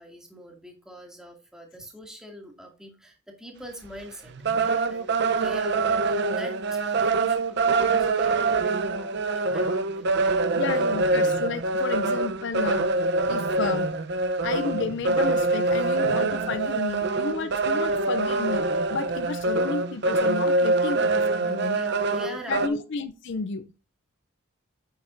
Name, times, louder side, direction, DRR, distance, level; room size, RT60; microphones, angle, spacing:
voice 1, 0.0-10.9 21.5-22.8, equal, 5° right, 2.2 m, -43 dB
sound 1, 3.8-4.0 4.3-22.7, right 3 dB, 55° right, 0.7 m, -24 dB
voice 2, 10.6-12.9 13.3-13.9 14.4-18.6 18.9-21.8 22.5-23.7, left 4 dB, 55° left, 0.5 m, -32 dB
9.1 x 7.9 x 2.6 m
head